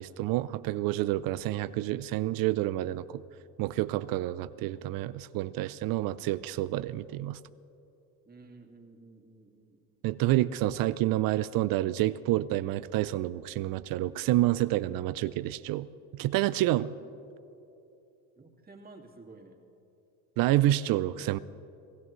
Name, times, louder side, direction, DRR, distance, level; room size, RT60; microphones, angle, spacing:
voice 1, 0.0-3.2 3.6-7.4 10.0-16.9 20.4-21.4, right 15 dB, 50° right, 16 dB, 0.5 m, -28 dB
voice 2, 8.3-9.9 18.4-19.6, right 3 dB, 20° right, 2 dB, 2.1 m, -52 dB
28.0 x 15.5 x 3.2 m, 2.8 s
supercardioid pair, 95°, 44 cm